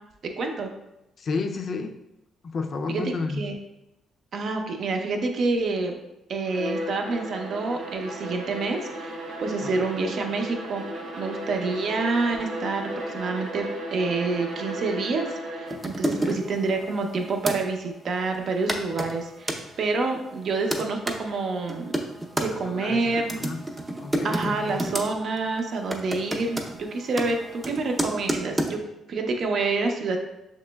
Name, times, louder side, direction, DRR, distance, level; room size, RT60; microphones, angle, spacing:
voice 1, 0.2-0.7 2.9-3.5 4.3-6.0 6.3-10.8 11.2-21.9 22.4-23.4 24.2-28.8 29.1-30.2, right 3 dB, 60° right, 3 dB, 0.6 m, -28 dB
voice 2, 1.2-2.0 2.4-3.5 9.6-9.9 16.0-16.5 22.5-23.7 24.0-25.0, left 4 dB, 55° left, 5 dB, 0.4 m, -32 dB
Bowed string instrument, 6.4-15.9, equal, 85° right, 1.1 m, -35 dB
sound 1, 15.7-17.6 18.3-18.4 18.7-19.6 20.3-21.2 21.7-22.5 23.2-25.1 25.4-25.6 25.9-28.7, right 1 dB, 20° right, 0.6 m, -30 dB
6.6 x 3.0 x 2.2 m, 0.90 s
cardioid pair, 90°, 0 cm